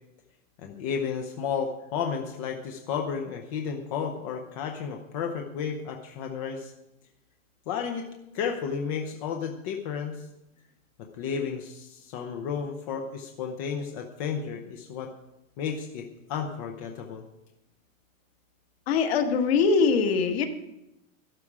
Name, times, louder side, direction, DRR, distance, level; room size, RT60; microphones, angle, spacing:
voice 1, 0.6-6.7 7.7-8.0 8.3-10.2 11.2-15.1 15.6-17.2, left 6 dB, 25° left, 3 dB, 0.7 m, -32 dB
voice 2, 18.9-20.5, left 5 dB, 45° left, 5 dB, 1.6 m, -22 dB
12.5 x 12.0 x 4.9 m, 0.89 s
supercardioid pair, 175°, 41 cm